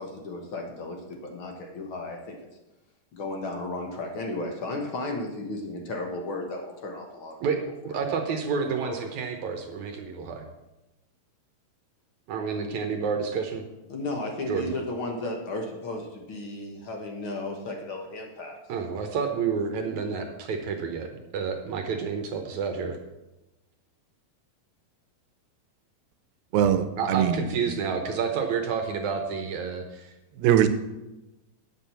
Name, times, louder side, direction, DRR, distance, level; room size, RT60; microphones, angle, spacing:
voice 1, 0.0-2.3 3.1-7.4 7.9-8.0 8.8-9.1 13.9-18.5, left 2 dB, 60° left, 2 dB, 1.3 m, -34 dB
voice 2, 7.4-10.5 12.3-13.6 14.4-14.7 18.7-23.0 27.0-30.1, right 5 dB, 70° right, 5 dB, 2.0 m, -29 dB
voice 3, 26.5-27.8 30.4-30.7, right 10 dB, 85° right, 9 dB, 2.6 m, -22 dB
9.5 x 7.5 x 6.9 m, 1.0 s
omnidirectional pair, 4.1 m